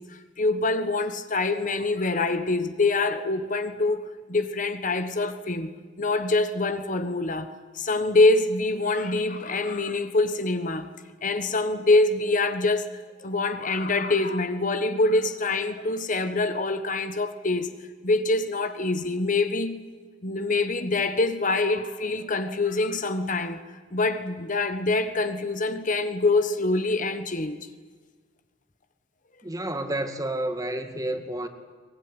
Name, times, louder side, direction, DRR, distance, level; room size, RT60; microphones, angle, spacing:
voice 1, 0.1-10.9 11.2-17.7 18.0-19.8 20.2-23.6 23.9-27.6, left 2 dB, 45° left, 1.4 m, -25 dB
voice 2, 29.4-31.5, right 1 dB, 20° right, 2.1 m, -30 dB
22.5 x 21.0 x 9.9 m
head